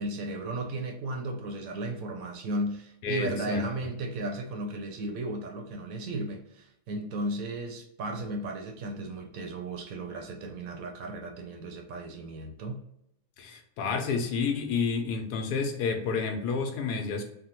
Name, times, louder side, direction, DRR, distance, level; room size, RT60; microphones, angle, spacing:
voice 1, 0.0-12.8, right 1 dB, 70° right, 4 dB, 0.9 m, -35 dB
voice 2, 3.0-3.6 13.4-17.2, left 5 dB, 85° left, 4 dB, 1.2 m, -30 dB
3.5 x 2.1 x 2.8 m, 0.79 s
omnidirectional pair, 1.7 m